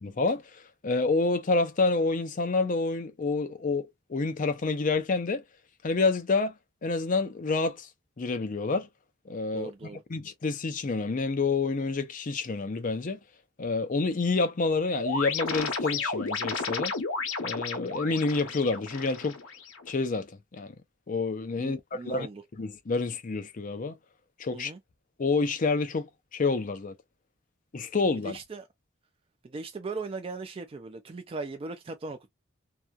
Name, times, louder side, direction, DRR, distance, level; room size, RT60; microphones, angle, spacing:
voice 1, 0.0-5.4 5.8-6.5 6.8-7.9 8.2-8.9 9.3-9.7 10.1-13.2 13.6-16.9 17.4-19.4 19.9-20.7 21.1-22.3 22.6-23.9 24.4-24.7 25.2-26.9 27.7-28.4, left 3 dB, 40° left, 0.5 m, -28 dB
voice 2, 9.5-10.0 21.6-22.4 24.5-24.8 28.2-28.7 29.4-32.3, right 3 dB, 30° right, 0.3 m, -38 dB
sound 1, 15.0-19.9, left 4 dB, 85° left, 0.9 m, -33 dB
2.8 x 2.3 x 2.3 m
head